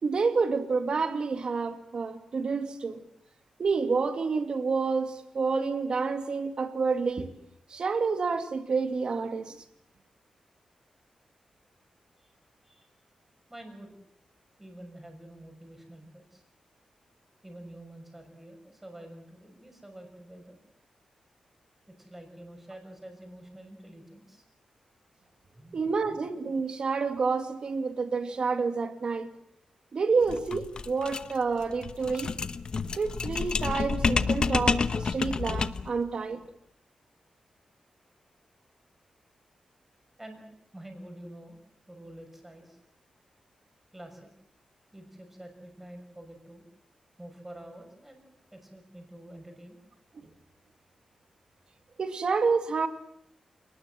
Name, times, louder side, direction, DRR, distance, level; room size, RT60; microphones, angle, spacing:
voice 1, 0.0-3.0 3.6-7.3 7.7-9.6 25.7-29.3 29.9-32.3 32.9-36.4 50.1-50.3 52.0-52.9, right 4 dB, 45° right, 2.4 m, -29 dB
voice 2, 13.5-14.0 14.6-16.4 17.4-20.6 21.9-24.4 25.5-26.2 40.2-40.5 40.7-41.6 41.9-42.8 43.9-44.3 44.9-46.6 47.2-49.8, right 1 dB, 10° right, 6.2 m, -48 dB
sound 1, 30.2-35.9, left 5 dB, 45° left, 1.0 m, -29 dB
29.0 x 20.0 x 7.7 m
wide cardioid pair, 155°, 2 cm